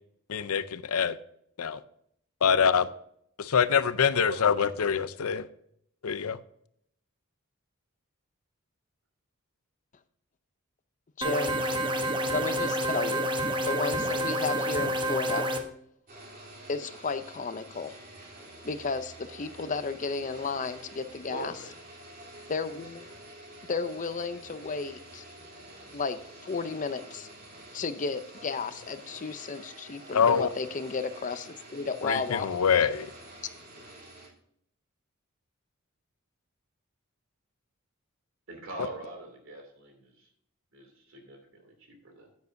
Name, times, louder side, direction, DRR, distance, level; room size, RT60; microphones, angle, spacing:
voice 1, 0.3-1.2 1.6-1.8 2.4-2.8 3.4-5.5 6.0-6.4 30.1-30.5 32.0-33.1, left 6 dB, 85° left, 14 dB, 0.6 m, -25 dB
voice 2, 4.3-4.9 21.3-21.8 38.5-40.3 40.7-42.3, right 2 dB, 65° right, 3 dB, 2.8 m, -42 dB
voice 3, 11.2-11.6 12.3-13.3 13.6-15.5 16.7-18.0 18.6-21.5 22.5-23.0 23.7-25.2 25.9-27.3 27.7-32.5, left 4 dB, 35° left, 11 dB, 0.5 m, -33 dB
sound 1, 11.2-15.6, right 1 dB, 20° right, 1.0 m, -28 dB
sound 2, 16.1-34.3, right 1 dB, 40° right, 3.4 m, -48 dB
9.4 x 9.4 x 2.6 m, 0.70 s
head